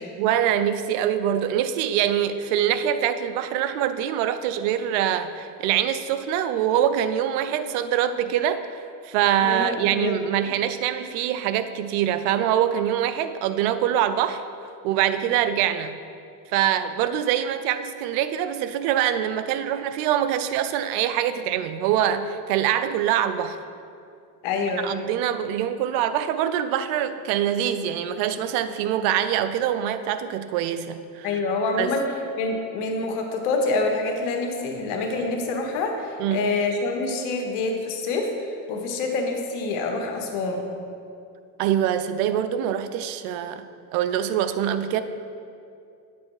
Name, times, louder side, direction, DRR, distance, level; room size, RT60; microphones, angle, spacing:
voice 1, 0.2-14.4 14.8-16.0 16.5-23.6 24.8-31.3 31.8-31.9 36.2-36.5 41.6-43.7 43.9-45.0, right 10 dB, 85° right, 11 dB, 0.7 m, -24 dB
voice 2, 9.4-10.2 24.4-24.9 31.2-40.7, left 3 dB, 85° left, 3 dB, 1.4 m, -26 dB
9.7 x 7.0 x 4.7 m, 2.5 s
supercardioid pair, 90°, 42 cm